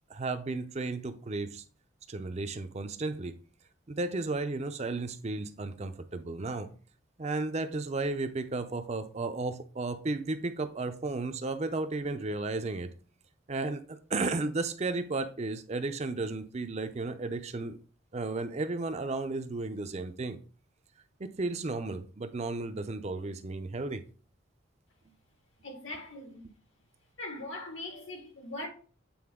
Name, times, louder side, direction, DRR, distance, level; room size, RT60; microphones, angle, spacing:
voice 1, 0.1-1.6 2.1-3.4 3.9-6.7 7.2-12.9 13.5-17.8 18.1-20.4 21.2-24.0, right 3 dB, 35° right, 0.5 m, -34 dB
voice 2, 25.6-26.4 27.2-28.7, left 2 dB, 75° left, 2.0 m, -40 dB
8.6 x 3.9 x 3.6 m
head